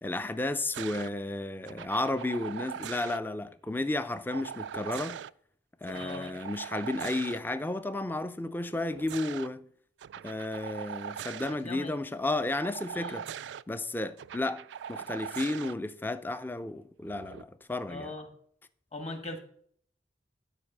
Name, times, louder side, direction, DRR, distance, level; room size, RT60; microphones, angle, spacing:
voice 1, 0.0-5.2 5.8-9.7 10.2-13.3 13.7-18.1, left 2 dB, 10° left, 0.4 m, -33 dB
sound 1, 0.7-1.1 1.7-3.2 4.3-5.3 5.8-7.4 8.7-9.5 10.0-11.5 12.6-13.6 14.2-15.7 17.0-17.4, right 8 dB, 75° right, 0.3 m, -41 dB
voice 2, 5.9-6.3 11.5-12.0 12.9-13.2 17.9-18.3 18.9-19.4, left 2 dB, 35° left, 1.5 m, -40 dB
12.0 x 4.7 x 6.6 m
head